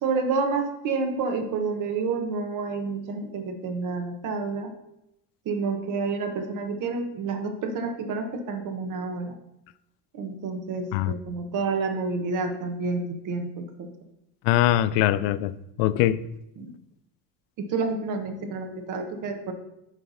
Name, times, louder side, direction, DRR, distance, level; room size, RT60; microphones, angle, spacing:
voice 1, 0.0-4.7 5.4-9.4 10.1-13.9 16.6-16.7 17.6-19.5, right 4 dB, 45° right, 1.2 m, -29 dB
voice 2, 14.4-16.2, left 13 dB, 90° left, 0.6 m, -22 dB
9.1 x 3.3 x 5.6 m
cardioid pair, 160°, 42 cm